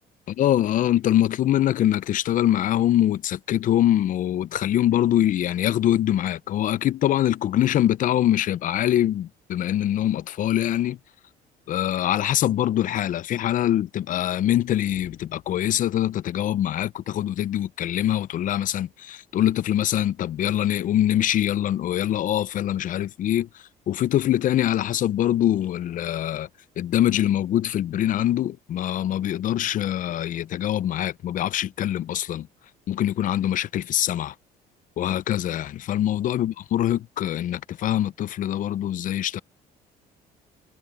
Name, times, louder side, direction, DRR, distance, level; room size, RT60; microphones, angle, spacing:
voice 1, 0.4-11.0 11.7-26.5 26.8-32.5 32.9-34.3 35.0-39.4, left 12 dB, 50° left, 0.5 m, -23 dB
cardioid pair, 110°, 17 cm